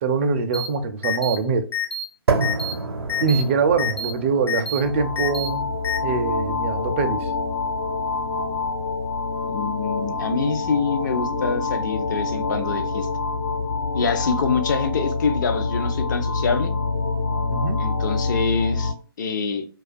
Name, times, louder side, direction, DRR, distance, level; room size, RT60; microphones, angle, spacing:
voice 1, 0.0-1.7 3.2-5.7 6.0-7.3 17.5-17.8, right 5 dB, 30° right, 0.3 m, -23 dB
sound 1, 0.5-0.7 1.0-1.4 1.7-2.0 2.4-2.7 3.1-3.4 3.8-4.1 4.5-4.8 5.2-5.5 5.8-6.0, left 4 dB, 90° left, 0.7 m, -27 dB
sound 2, 2.3-10.3, right 4 dB, 80° right, 0.6 m, -31 dB
sound 3, 4.8-18.9, left 3 dB, 75° left, 1.2 m, -26 dB
voice 2, 9.5-13.1 13.9-16.7 17.8-19.6, left 5 dB, 50° left, 0.5 m, -25 dB
2.3 x 2.2 x 2.5 m
hypercardioid pair, 145°, 13 cm